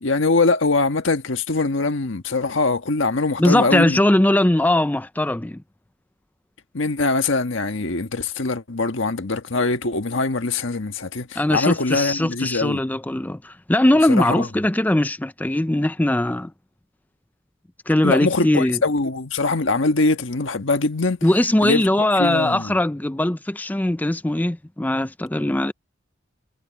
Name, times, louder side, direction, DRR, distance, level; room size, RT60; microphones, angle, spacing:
voice 1, 0.0-4.0 6.7-12.8 14.1-14.5 18.0-21.2 21.6-21.8 22.2-22.7, left 3 dB, 80° left, 1.4 m, -22 dB
voice 2, 3.4-5.6 11.4-16.5 17.9-18.8 21.2-25.7, left 1 dB, 10° left, 0.4 m, -20 dB
head